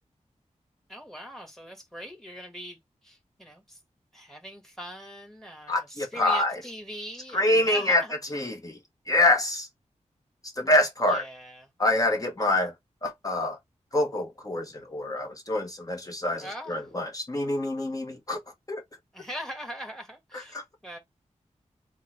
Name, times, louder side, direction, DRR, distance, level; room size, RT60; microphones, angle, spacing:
voice 1, 0.9-3.8 4.1-8.1 11.1-11.7 16.4-16.8 19.1-21.0, equal, 5° left, 1.7 m, -41 dB
voice 2, 5.7-6.6 7.3-8.0 8.3-8.8 9.1-9.7 10.6-11.2 11.8-12.7 13.0-13.6 13.9-18.4 18.7-18.8 20.3-20.6, left 1 dB, 30° left, 1.2 m, -26 dB
3.7 x 2.3 x 4.5 m
wide cardioid pair, 80°, 13 cm